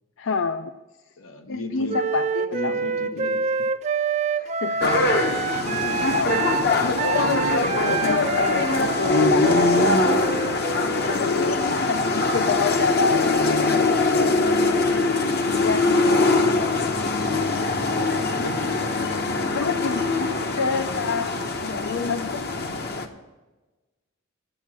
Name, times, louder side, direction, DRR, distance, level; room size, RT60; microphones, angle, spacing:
voice 1, 0.2-0.7 1.5-2.8 4.4-5.6 6.0-6.4 6.8-10.6 10.9-14.3 15.6-16.7 19.2-21.3 21.6-22.4, left 5 dB, 70° left, 10 dB, 0.4 m, -29 dB
voice 2, 1.2-2.0 2.5-3.5 5.6-8.0 17.4-17.6 18.2-18.8, left 2 dB, 85° left, 7 dB, 0.9 m, -34 dB
Wind instrument woodwind instrument, 1.9-11.7, right 5 dB, 35° right, 0.3 m, -27 dB
sound 1, 4.8-23.1, left 3 dB, 50° left, 0.8 m, -22 dB
9.0 x 8.3 x 6.0 m, 1.2 s
head